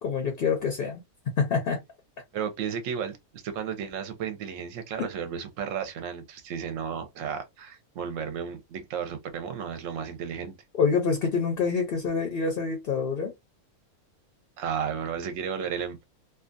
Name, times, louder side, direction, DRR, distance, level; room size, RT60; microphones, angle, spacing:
voice 1, 0.0-1.0 1.4-1.8 5.0-5.1 10.8-13.3, left 5 dB, 50° left, 0.7 m, -26 dB
voice 2, 2.3-10.5 14.6-16.0, right 7 dB, 65° right, 1.0 m, -33 dB
2.7 x 2.3 x 2.5 m
omnidirectional pair, 1.6 m